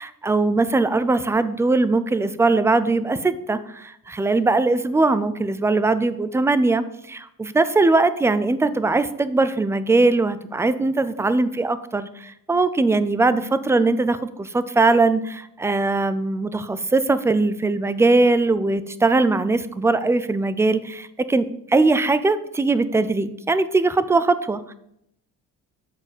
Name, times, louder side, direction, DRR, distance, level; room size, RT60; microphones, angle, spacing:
voice 1, 0.0-24.7, right 3 dB, 10° right, 13 dB, 0.4 m, -20 dB
7.3 x 4.2 x 6.5 m, 0.77 s
cardioid pair, 115°, 31 cm